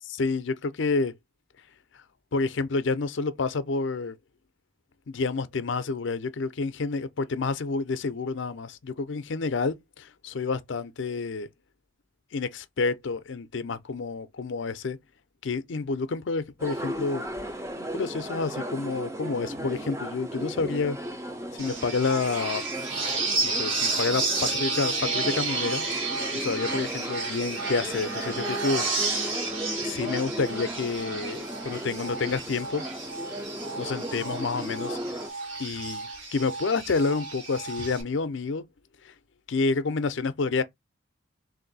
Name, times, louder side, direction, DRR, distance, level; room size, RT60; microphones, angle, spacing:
voice 1, 0.0-1.1 2.3-4.2 5.1-11.5 12.3-15.0 15.4-17.2 17.9-21.0 21.5-22.6 23.4-25.8 26.3-29.4 29.8-32.8 33.8-35.0 35.6-38.6 39.0-39.1 39.5-40.6, left 4 dB, 70° left, 0.5 m, -29 dB
sound 1, 16.6-35.3, equal, 15° right, 0.5 m, -36 dB
sound 2, 21.6-38.0, right 3 dB, 80° right, 1.4 m, -32 dB
3.5 x 2.6 x 4.0 m
head